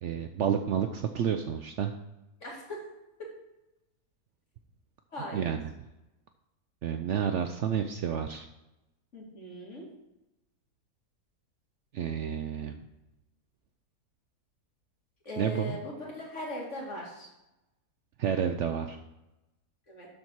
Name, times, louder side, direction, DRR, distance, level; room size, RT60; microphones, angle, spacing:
voice 1, 0.0-1.9 5.3-5.6 6.8-8.5 11.9-12.8 15.4-15.8 18.2-19.0, right 8 dB, 65° right, 6 dB, 0.7 m, -30 dB
voice 2, 2.4-2.8 3.2-3.3 5.1-5.5 9.1-9.9 15.2-17.3 19.9-20.1, left 1 dB, 50° left, -3 dB, 2.6 m, -39 dB
12.0 x 4.2 x 4.6 m, 0.94 s
omnidirectional pair, 1.6 m